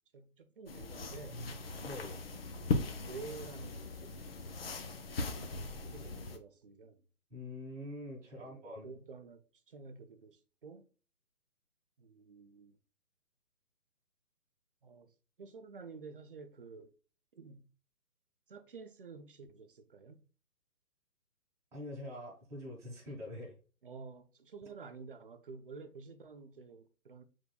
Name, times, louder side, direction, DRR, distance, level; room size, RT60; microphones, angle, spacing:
voice 1, 0.1-1.5 2.1-4.2 5.3-7.0 8.3-10.9 12.0-12.8 14.8-16.9 17.3-17.7 18.5-20.3 23.8-27.2, right 4 dB, 40° right, 0.4 m, -51 dB
sound 1, 0.7-6.4, left 3 dB, 45° left, 0.6 m, -39 dB
voice 2, 1.8-2.2 7.3-8.9 21.7-23.5, left 1 dB, 5° right, 1.3 m, -44 dB
6.4 x 3.5 x 2.3 m
hypercardioid pair, 155°, 43 cm